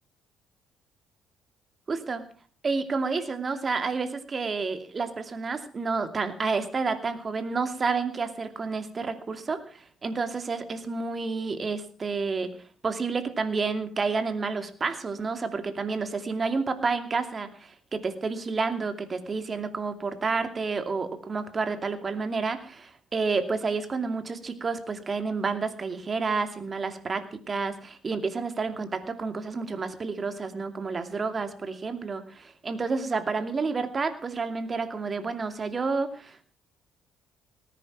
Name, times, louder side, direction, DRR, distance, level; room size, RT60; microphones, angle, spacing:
voice 1, 1.9-2.2 2.6-12.5 12.8-36.4, right 4 dB, 35° right, 9 dB, 2.5 m, -30 dB
18.5 x 10.0 x 6.0 m, 0.44 s
hypercardioid pair, 50°, 0 cm